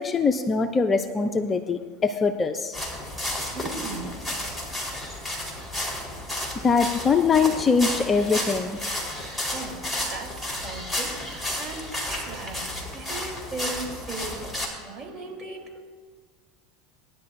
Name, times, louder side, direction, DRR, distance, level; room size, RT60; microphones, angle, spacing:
voice 1, 0.0-2.8 6.6-8.8, left 5 dB, 25° left, 8 dB, 0.7 m, -22 dB
sound 1, 2.7-14.7, left 1 dB, ahead, 4.1 m, -32 dB
voice 2, 3.5-4.1 9.5-9.8 10.1-11.2 11.5-12.7 12.9-15.8, right 3 dB, 30° right, 0 dB, 3.7 m, -37 dB
19.5 x 10.5 x 2.7 m, 1.5 s
hypercardioid pair, 85°, 0 cm